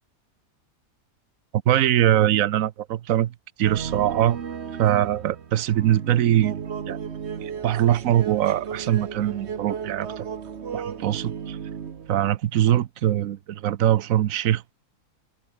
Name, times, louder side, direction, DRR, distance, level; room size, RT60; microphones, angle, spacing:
voice 1, 1.5-4.4 4.8-7.0 7.4-10.3 10.7-11.6 12.1-14.7, right 12 dB, 60° right, 1.1 m, -22 dB
sound 1, 3.6-12.1, right 7 dB, 45° right, 1.3 m, -34 dB
omnidirectional pair, 1.7 m